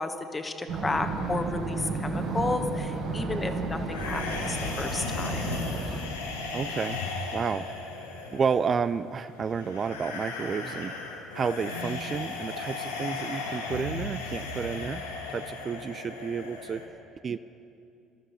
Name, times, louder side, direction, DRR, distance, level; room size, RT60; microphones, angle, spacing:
voice 1, 0.0-5.4, left 3 dB, 20° left, 7 dB, 1.2 m, -32 dB
sound 1, 0.7-6.0, right 3 dB, 70° right, 4.6 m, -32 dB
sound 2, 3.9-16.9, left 3 dB, 85° left, 1.5 m, -36 dB
voice 2, 6.5-7.0 7.3-7.7 8.3-11.0 11.3-15.0 15.3-16.8 17.2-17.4, right 6 dB, 35° right, 13 dB, 0.3 m, -31 dB
21.5 x 13.0 x 4.3 m, 2.6 s
hypercardioid pair, 60°, 0 cm